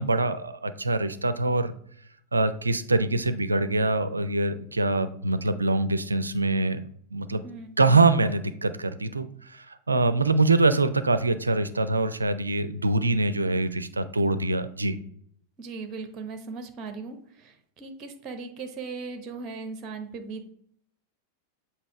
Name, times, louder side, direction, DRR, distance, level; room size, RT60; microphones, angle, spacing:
voice 1, 0.0-1.7 2.3-6.8 7.1-7.4 7.8-15.0, right 2 dB, 80° right, 12 dB, 0.4 m, -24 dB
voice 2, 7.4-8.0 15.6-17.2 17.8-20.5, right 4 dB, 30° right, 7 dB, 0.9 m, -38 dB
7.4 x 2.8 x 4.6 m, 0.66 s
figure-of-eight pair, 90°, 0 cm